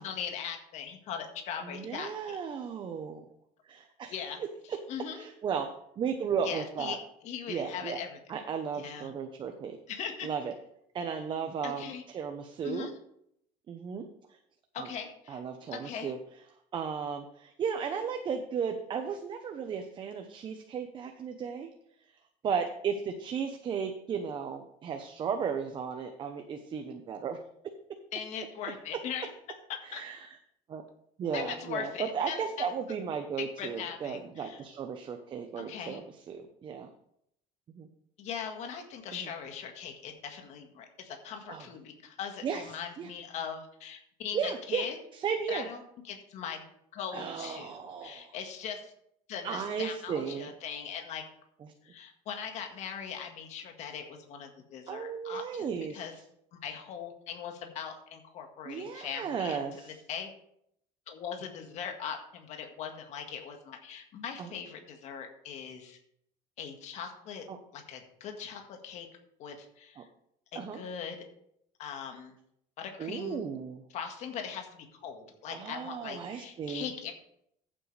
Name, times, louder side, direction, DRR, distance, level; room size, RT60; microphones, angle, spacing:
voice 1, 0.0-2.4 4.1-4.4 4.9-5.3 6.4-7.0 7.2-8.2 8.7-9.1 9.9-10.3 11.6-12.0 12.6-12.9 14.7-15.4 15.7-16.1 28.1-29.3 29.9-30.0 31.3-32.7 33.4-34.6 35.6-36.0 38.2-45.0 45.5-46.6 46.9-48.9 49.3-51.2 51.8-56.1 56.5-60.3 61.1-66.0 66.6-67.4 67.7-69.1 69.4-70.1 70.5-71.3 71.8-72.3 72.8-73.5 73.9-77.1, left 7 dB, 60° left, 4 dB, 1.8 m, -40 dB
voice 2, 1.6-3.2 3.6-4.1 4.7-4.8 5.1-7.0 7.5-8.0 8.3-9.8 10.2-10.5 10.9-12.9 13.7-14.4 14.8-14.9 15.3-16.2 16.7-21.7 22.4-27.4 29.8-30.4 30.7-30.8 31.2-36.9 37.7-37.9 39.1-39.3 41.5-41.6 42.4-43.1 44.3-44.8 45.1-45.7 47.1-48.3 49.4-50.5 54.9-56.0 58.6-60.0 64.4-64.5 67.5-67.6 70.0-70.1 70.5-70.8 73.0-73.8 75.5-76.9, right 6 dB, 35° right, 5 dB, 0.9 m, -35 dB
14.0 x 7.7 x 3.4 m, 0.74 s
cardioid pair, 135°, 14 cm